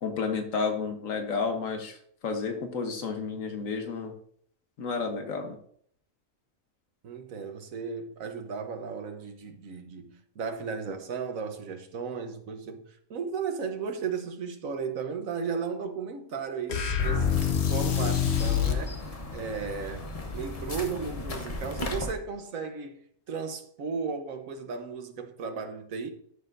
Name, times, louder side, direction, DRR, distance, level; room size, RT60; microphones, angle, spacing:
voice 1, 0.0-4.1 4.8-5.6, left 5 dB, 80° left, 1.5 m, -31 dB
voice 2, 7.0-12.8 13.1-17.3 17.7-23.0 23.3-26.1, right 5 dB, 90° right, 1.4 m, -35 dB
sound 1, 16.7-18.9, left 8 dB, 60° left, 1.0 m, -26 dB
sound 2, 17.0-22.1, left 1 dB, 30° left, 1.0 m, -37 dB
13.0 x 6.5 x 2.6 m
omnidirectional pair, 1.4 m